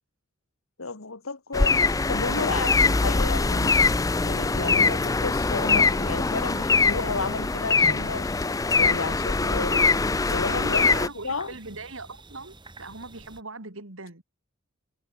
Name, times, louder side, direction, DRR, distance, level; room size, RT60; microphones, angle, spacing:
voice 1, 0.8-3.8 4.3-8.3 8.7-9.8 10.3-11.0 11.2-11.5, left 3 dB, 85° left, 1.9 m, -32 dB
sound 1, 1.5-11.1, left 4 dB, 15° left, 0.4 m, -23 dB
sound 2, 5.0-13.4, right 2 dB, 20° right, 4.5 m, -48 dB
voice 2, 9.5-10.0 10.5-14.2, right 3 dB, 70° right, 2.9 m, -40 dB
head